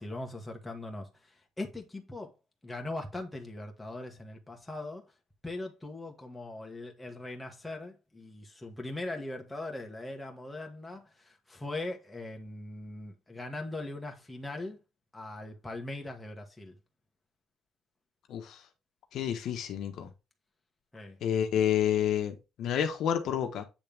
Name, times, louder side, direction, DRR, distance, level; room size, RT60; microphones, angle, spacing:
voice 1, 0.0-2.3 2.6-5.0 5.4-14.8 15.1-16.8 20.9-21.2, left 2 dB, 5° left, 1.4 m, -40 dB
voice 2, 18.3-18.6 19.1-20.1 21.2-23.6, left 9 dB, 60° left, 1.1 m, -29 dB
8.7 x 3.5 x 3.4 m
cardioid pair, 155°, 0 cm